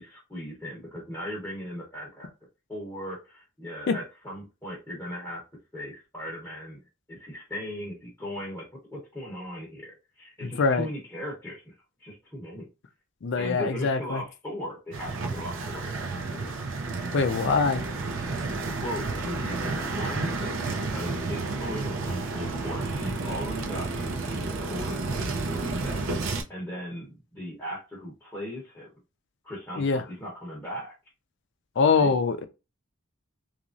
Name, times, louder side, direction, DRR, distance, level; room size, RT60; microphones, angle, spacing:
voice 1, 0.0-2.3 2.7-5.4 5.7-6.8 7.1-8.6 8.9-11.7 12.0-12.7 13.4-16.6 18.8-28.9 29.4-30.9 31.8-32.2, equal, 10° left, 0.8 m, -38 dB
voice 2, 10.4-10.9 13.2-14.2 17.1-17.8 29.8-30.0 31.8-32.4, left 4 dB, 55° left, 0.4 m, -23 dB
sound 1, 14.9-26.4, right 3 dB, 60° right, 0.5 m, -31 dB
3.0 x 2.4 x 2.5 m
head